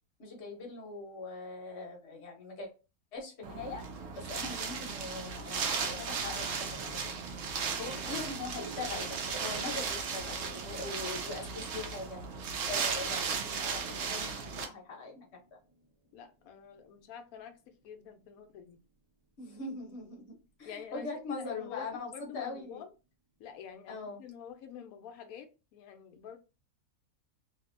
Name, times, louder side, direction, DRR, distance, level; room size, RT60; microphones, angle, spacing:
voice 1, 0.2-2.7 3.1-3.8 4.1-6.9 7.8-12.2 12.7-15.3 19.4-22.8 23.9-24.2, left 3 dB, 50° left, 1.0 m, -41 dB
Wind, 3.4-14.6, right 5 dB, 65° right, 0.9 m, -36 dB
sound 1, 6.3-20.1, right 3 dB, 35° right, 0.4 m, -54 dB
voice 2, 16.1-18.8 20.7-22.9 23.4-26.4, left 8 dB, 75° left, 1.0 m, -48 dB
2.8 x 2.6 x 2.4 m
omnidirectional pair, 1.6 m